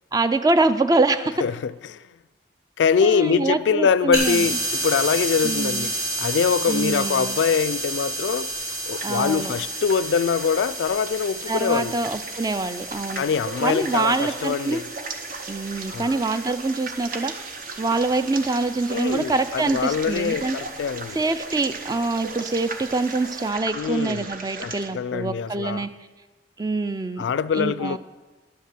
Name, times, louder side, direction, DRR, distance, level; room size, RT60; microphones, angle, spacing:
voice 1, 0.1-1.3 3.0-4.5 5.4-5.9 6.7-7.4 9.0-9.5 11.5-13.2 13.6-14.8 15.5-17.3 17.8-20.6 21.1-25.9 26.6-27.2 27.5-28.0, right 3 dB, 20° right, 0.4 m, -24 dB
voice 2, 1.4-2.1 2.8-8.5 8.9-12.0 13.2-14.8 15.9-16.2 18.9-21.2 23.7-24.3 24.6-25.9 27.2-28.0, left 6 dB, 75° left, 0.3 m, -24 dB
sound 1, 4.1-23.5, right 1 dB, 75° right, 4.0 m, -32 dB
sound 2, 6.8-24.9, right 4 dB, 50° right, 0.7 m, -38 dB
11.0 x 5.6 x 7.6 m
head